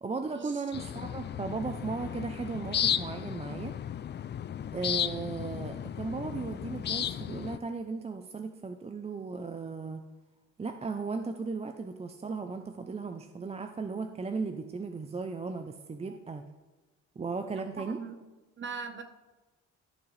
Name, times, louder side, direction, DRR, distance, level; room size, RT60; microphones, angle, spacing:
voice 1, 0.0-3.7 4.7-10.0 10.6-16.5 17.2-18.0, right 4 dB, 20° right, 7 dB, 0.5 m, -36 dB
sound 1, 0.7-7.6, left 9 dB, 35° left, 0.4 m, -34 dB
voice 2, 17.8-18.2 18.6-19.0, right 5 dB, 40° right, 7 dB, 1.1 m, -40 dB
14.0 x 5.9 x 3.3 m, 1.1 s
cardioid pair, 90°, 30 cm